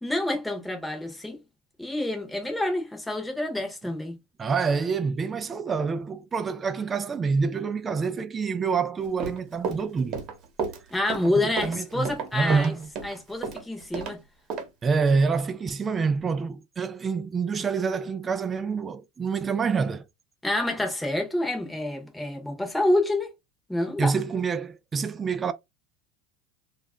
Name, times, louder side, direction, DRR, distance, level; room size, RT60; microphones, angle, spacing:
voice 1, 0.0-1.4 1.8-4.2 10.9-12.7 13.0-14.2 20.4-23.3 23.7-24.1, left 1 dB, 5° left, 0.9 m, -28 dB
voice 2, 4.4-10.2 11.4-12.9 14.8-20.1 24.0-25.5, right 5 dB, 25° right, 0.3 m, -27 dB
Run, 9.0-14.1 14.5-14.7, right 5 dB, 50° right, 1.0 m, -32 dB
2.4 x 2.0 x 3.5 m
supercardioid pair, 105°, 0 cm